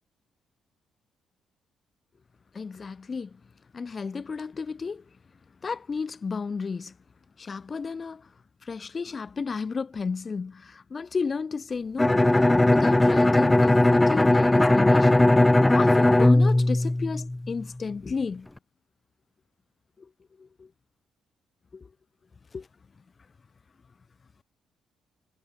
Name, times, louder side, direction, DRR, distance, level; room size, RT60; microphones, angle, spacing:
voice 1, 2.5-3.4 3.7-5.0 5.6-7.0 7.4-8.3 8.6-12.3 12.7-15.3 15.7-18.5 20.0-20.1 20.4-20.7 21.7-21.9 22.5-22.7, left 5 dB, 35° left, 7.1 m, -33 dB
Bowed string instrument, 12.0-17.7, left 1 dB, 10° left, 0.6 m, -19 dB
cardioid pair, 90°, 0 cm